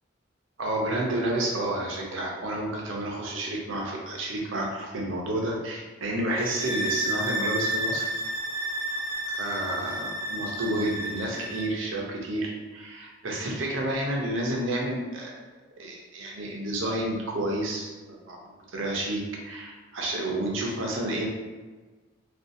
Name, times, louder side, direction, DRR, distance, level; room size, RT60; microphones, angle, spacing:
voice 1, 0.6-8.1 9.3-15.4 15.8-21.3, right 1 dB, 80° right, -1 dB, 0.6 m, -30 dB
sound 1, 6.3-11.7, right 1 dB, 10° right, 0.3 m, -31 dB
2.5 x 2.3 x 2.6 m, 1.3 s
head